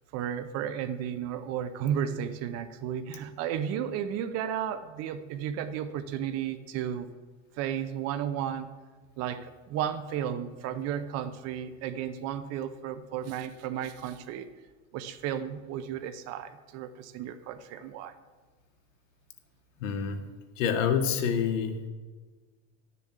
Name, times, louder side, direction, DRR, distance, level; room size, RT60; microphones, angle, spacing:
voice 1, 0.1-7.1 7.6-8.7 9.2-14.5 14.9-18.1, right 9 dB, 40° right, 12 dB, 0.7 m, -33 dB
voice 2, 19.8-20.3 20.6-21.8, left 7 dB, 80° left, 7 dB, 1.5 m, -27 dB
11.5 x 6.9 x 7.5 m, 1.4 s
supercardioid pair, 150°, 38 cm